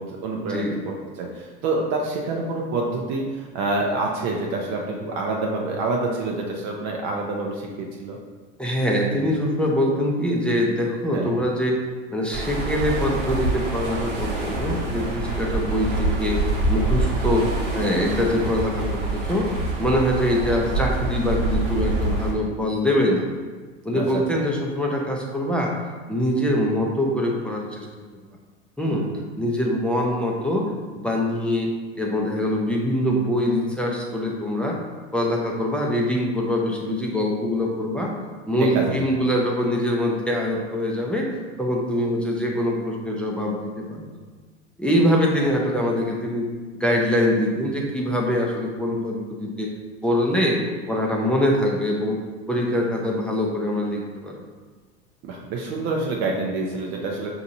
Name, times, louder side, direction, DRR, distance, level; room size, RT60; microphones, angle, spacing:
voice 1, 0.0-8.2 11.1-11.4 23.9-24.2 28.9-29.2 38.6-39.0 55.2-57.3, right 3 dB, 50° right, 0 dB, 0.7 m, -27 dB
voice 2, 8.6-11.8 12.1-16.4 16.7-19.5 19.8-23.3 23.8-25.7 26.1-27.9 28.8-29.1 29.4-30.7 31.0-31.7 32.0-34.8 35.1-38.1 38.5-44.1 44.8-46.5 46.7-49.7 50.0-50.6 50.9-52.2 52.5-54.4, left 1 dB, 5° left, -2 dB, 0.6 m, -23 dB
sound 1, 12.3-22.3, right 2 dB, 80° right, 1.1 m, -26 dB
5.7 x 2.7 x 2.7 m, 1.4 s
hypercardioid pair, 90°, 35 cm